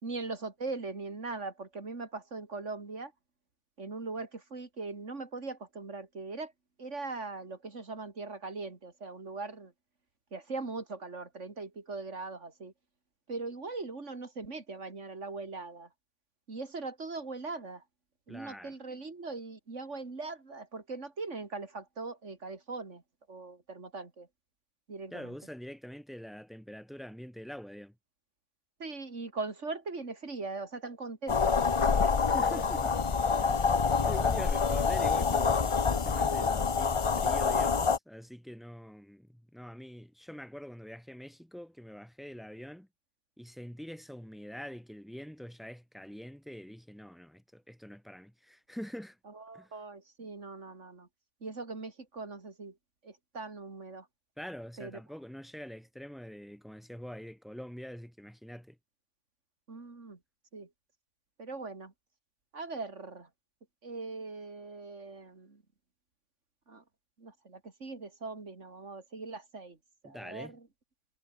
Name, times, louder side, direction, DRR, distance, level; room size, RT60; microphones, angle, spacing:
voice 1, 0.0-3.1 3.8-6.5 6.8-9.7 10.3-12.7 13.3-15.9 16.5-17.8 18.3-23.0 23.3-24.3 24.9-25.3 28.8-32.1 33.3-33.4 49.3-51.1 51.4-52.8 53.0-54.1 54.8-55.0 59.7-60.2 60.5-60.7 61.4-61.9 62.5-63.3 63.8-65.6 66.7-66.8 67.2-69.8 70.0-70.7, right 3 dB, 80° right, 3.3 m, -40 dB
voice 2, 18.3-18.7 25.1-27.9 32.3-32.9 33.4-42.9 43.4-49.2 49.5-49.7 54.4-58.8 70.0-70.6, equal, ahead, 4.3 m, -45 dB
sound 1, 31.3-38.0, left 5 dB, 30° left, 0.7 m, -27 dB
omnidirectional pair, 1.2 m